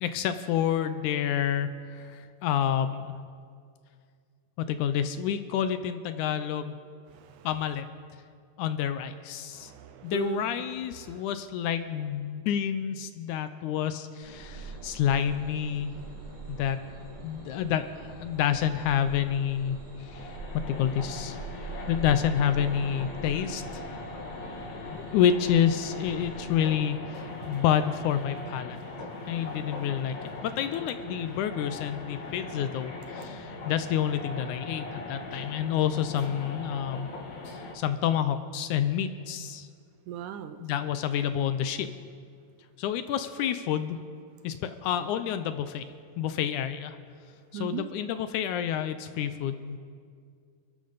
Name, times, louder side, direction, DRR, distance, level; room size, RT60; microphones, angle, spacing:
voice 1, 0.0-3.1 4.6-6.8 7.5-7.9 8.6-9.7 10.0-15.9 16.5-16.8 17.2-20.3 20.7-21.4 21.9-23.8 24.8-28.8 29.3-30.2 30.4-37.1 37.5-39.7 40.6-41.9 42.8-44.0 44.4-45.8 46.2-47.0 47.5-49.8, left 9 dB, 80° left, 10 dB, 1.9 m, -28 dB
voice 2, 7.1-7.5 9.5-10.5 11.0-11.2 27.4-27.6 28.7-29.9 32.3-32.4 33.3-33.7 40.1-40.6 47.5-47.9, right 11 dB, 80° right, 10 dB, 2.0 m, -39 dB
sound 1, 14.2-26.7, right 2 dB, 15° right, 2.5 m, -44 dB
sound 2, 20.0-37.7, left 3 dB, 60° left, 2.7 m, -40 dB
28.0 x 12.0 x 4.0 m, 2.2 s
omnidirectional pair, 3.8 m